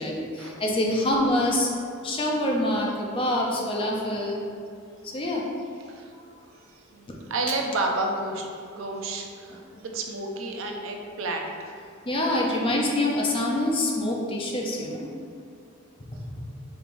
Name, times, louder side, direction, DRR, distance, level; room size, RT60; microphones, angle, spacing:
voice 1, 0.0-1.7 2.0-4.4 5.1-5.4 12.1-15.1, left 1 dB, 25° left, -1 dB, 0.4 m, -25 dB
voice 2, 6.6-11.7, right 2 dB, 65° right, 2 dB, 0.5 m, -31 dB
4.9 x 3.1 x 2.5 m, 2.4 s
head